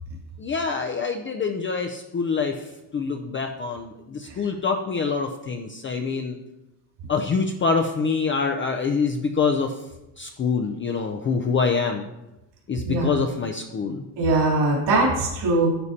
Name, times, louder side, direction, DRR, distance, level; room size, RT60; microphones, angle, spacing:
voice 1, 0.4-6.4 7.1-9.8 10.2-12.1 12.7-14.0, left 5 dB, 25° left, 4 dB, 0.5 m, -25 dB
voice 2, 14.2-15.7, right 2 dB, 65° right, -4 dB, 3.2 m, -21 dB
9.6 x 9.5 x 2.8 m, 0.98 s
cardioid pair, 140°, 47 cm